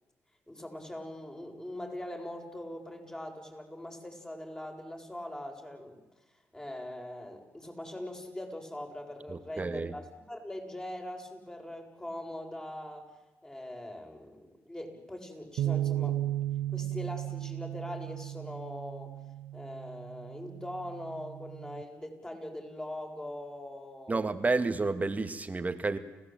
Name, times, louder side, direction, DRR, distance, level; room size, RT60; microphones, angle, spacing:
voice 1, 0.5-6.0 6.5-13.1 13.4-16.2 16.7-19.1 19.5-24.3, left 1 dB, 15° left, 2 dB, 7.6 m, -42 dB
voice 2, 9.3-9.9 24.1-26.0, right 3 dB, 25° right, 8 dB, 2.2 m, -30 dB
sound 1, 15.6-21.8, right 13 dB, 80° right, 0.9 m, -35 dB
29.5 x 16.5 x 9.2 m, 1.1 s
supercardioid pair, 65°, 6 cm